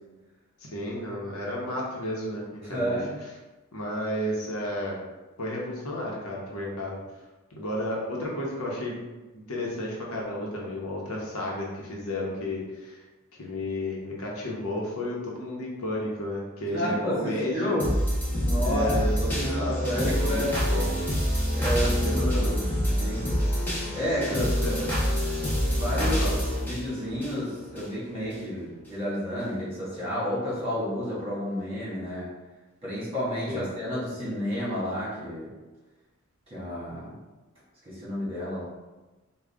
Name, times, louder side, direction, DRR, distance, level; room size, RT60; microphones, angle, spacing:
voice 1, 0.6-3.0 3.7-5.0 5.4-7.0 7.5-9.0 9.3-13.0 13.4-17.8 18.6-21.0 21.8-22.6 24.3-25.0 26.0-26.4 33.5-33.6, left 1 dB, 85° left, -3 dB, 0.9 m, -32 dB
voice 2, 2.6-3.1 16.7-17.9 18.4-18.9 19.2-20.6 21.5-22.6 23.0-23.4 23.9-24.5 25.7-26.2 26.6-32.3 32.8-35.5 36.5-37.2 37.8-38.6, equal, 25° right, -8 dB, 1.5 m, -31 dB
sound 1, 17.8-27.8 28.3-28.4, equal, 10° left, 0.8 m, -26 dB
3.7 x 2.3 x 3.5 m, 1.2 s
head